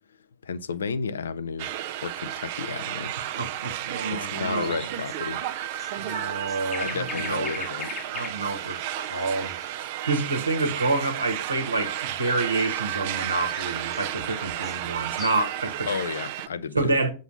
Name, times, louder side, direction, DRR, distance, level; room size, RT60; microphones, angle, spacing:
voice 1, 0.4-1.7 2.0-3.1 4.1-5.4 6.8-7.9 15.9-17.0, left 5 dB, 70° left, 0.6 m, -32 dB
sound 1, 1.6-16.5, right 12 dB, 50° right, 0.6 m, -33 dB
voice 2, 3.2-4.9 6.0-7.7 8.1-15.9 16.7-17.1, right 3 dB, 80° right, 1.7 m, -28 dB
sound 2, 4.6-9.7 13.1-15.6, left 5 dB, 25° left, 0.9 m, -40 dB
7.9 x 3.9 x 6.8 m
figure-of-eight pair, 90°, 0 cm